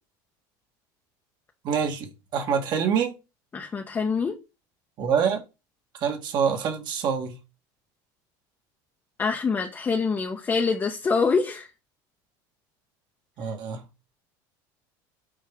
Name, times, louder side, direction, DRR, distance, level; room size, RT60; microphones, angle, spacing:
voice 1, 1.6-2.1 2.3-3.1 5.0-5.4 6.0-7.3 13.4-13.8, right 7 dB, 45° right, 1.8 m, -25 dB
voice 2, 3.5-4.3 9.2-11.7, left 5 dB, 20° left, 1.0 m, -25 dB
7.4 x 4.6 x 3.6 m
cardioid pair, 135°, 10 cm